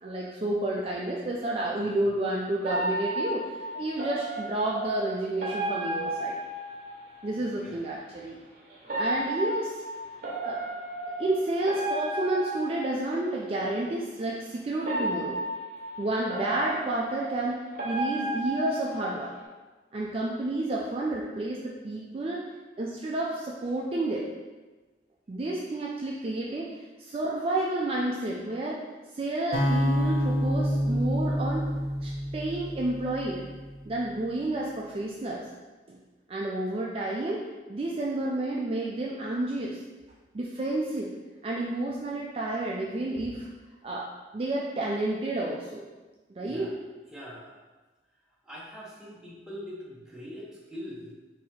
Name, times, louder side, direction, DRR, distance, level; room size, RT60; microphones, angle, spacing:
voice 1, 0.0-6.4 7.2-8.4 9.0-9.7 10.4-10.7 11.2-15.4 16.0-19.3 19.9-22.4 22.8-24.3 25.3-28.8 29.1-31.6 32.0-33.4 33.9-35.4 35.9-36.0 36.3-37.4 37.7-39.8 40.3-41.1 41.4-43.5 43.8-44.1 44.3-45.8 46.4-46.7, right 2 dB, 30° right, -3 dB, 0.4 m, -30 dB
sound 1, 2.7-7.3 8.8-13.5 14.8-19.4, right 1 dB, 45° right, 0.8 m, -33 dB
sound 2, 29.5-33.7, equal, 55° left, 0.8 m, -27 dB
voice 2, 46.4-46.7 47.1-47.6 48.4-51.1, equal, 5° right, -6 dB, 0.8 m, -42 dB
3.9 x 2.8 x 4.1 m, 1.2 s
head